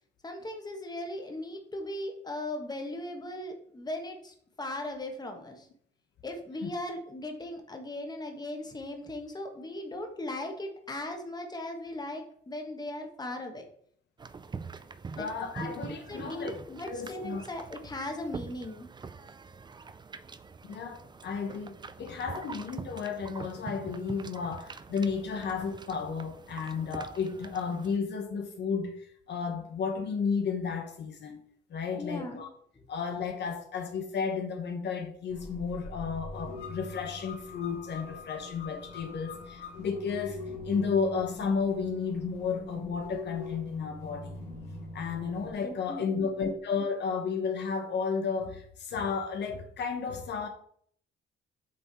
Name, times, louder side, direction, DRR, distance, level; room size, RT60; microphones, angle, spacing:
voice 1, 0.2-5.7 6.2-13.7 15.2-15.3 15.6-18.9 31.9-32.4 45.6-46.3, left 1 dB, 20° left, 4 dB, 1.4 m, -38 dB
sound 1, 14.2-28.0, right 4 dB, 20° right, 0.4 m, -45 dB
voice 2, 15.2-16.6 16.9-17.4 20.6-31.4 31.7-32.5 32.9-44.4 44.9-50.5, left 5 dB, 60° left, 4 dB, 0.9 m, -33 dB
sound 2, 35.3-45.5, left 3 dB, 90° left, 2.3 m, -42 dB
7.8 x 3.6 x 4.2 m, 0.62 s
cardioid pair, 90°, 20 cm